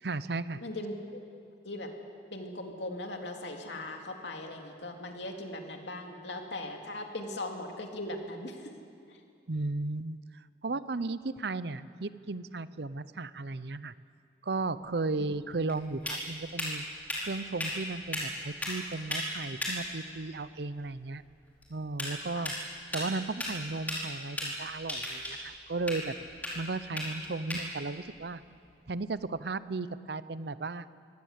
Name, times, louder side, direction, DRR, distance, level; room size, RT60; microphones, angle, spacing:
voice 1, 0.0-0.6 9.5-13.9 14.4-16.8 17.2-21.2 21.7-22.5 22.9-26.2 26.5-28.4 28.9-30.9, right 3 dB, 60° right, 15 dB, 0.7 m, -35 dB
voice 2, 0.6-1.2 1.6-1.9 2.3-8.7 9.1-9.2 15.2-15.3 22.3-22.5 27.2-27.3, left 1 dB, 70° left, 3 dB, 2.6 m, -39 dB
sound 1, 14.8-29.5, left 1 dB, 10° left, 4.8 m, -39 dB
23.5 x 18.0 x 8.2 m, 2.4 s
head